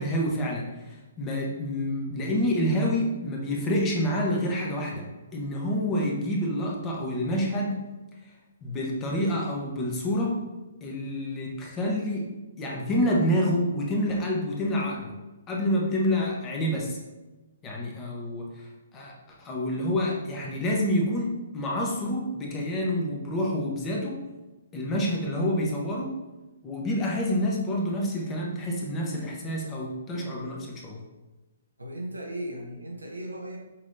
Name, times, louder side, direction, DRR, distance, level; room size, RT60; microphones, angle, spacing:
voice 1, 0.0-5.0 5.3-7.8 8.2-8.3 8.6-10.4 10.8-12.3 12.6-15.2 15.5-17.0 17.6-24.2 24.7-26.1 26.6-31.0, equal, 20° left, -1 dB, 0.9 m, -28 dB
voice 2, 31.8-33.6, right 1 dB, 90° right, 0 dB, 0.9 m, -36 dB
5.7 x 3.1 x 2.7 m, 1.1 s
figure-of-eight pair, 125°, 0 cm